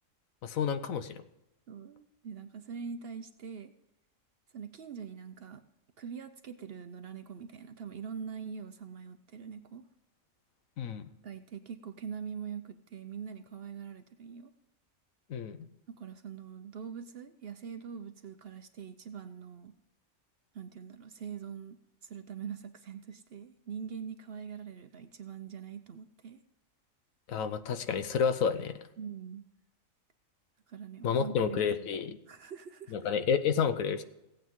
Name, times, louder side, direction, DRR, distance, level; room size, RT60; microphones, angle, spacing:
voice 1, 0.4-1.2 10.8-11.1 15.3-15.7 27.3-28.8 31.0-32.2 32.9-34.0, left 7 dB, 80° left, 11 dB, 1.2 m, -30 dB
voice 2, 1.7-3.7 4.5-5.6 6.0-9.8 11.2-14.5 15.9-19.8 20.5-26.4 29.0-29.5 30.7-31.9 32.3-32.9, right 7 dB, 55° right, 9 dB, 0.7 m, -43 dB
16.0 x 8.9 x 3.6 m, 0.91 s
omnidirectional pair, 1.4 m